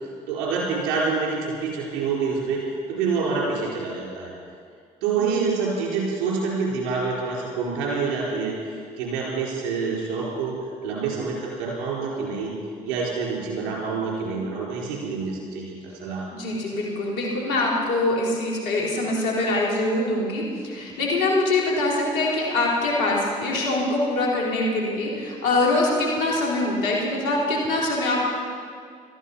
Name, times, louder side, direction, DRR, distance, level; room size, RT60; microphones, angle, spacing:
voice 1, 0.3-2.6 2.9-4.3 5.0-10.6 10.8-12.5 12.8-16.3, right 4 dB, 85° right, -3 dB, 4.2 m, -27 dB
voice 2, 16.3-28.2, left 2 dB, 85° left, -3 dB, 3.6 m, -24 dB
17.5 x 13.5 x 5.6 m, 2.1 s
hypercardioid pair, 50°, 17 cm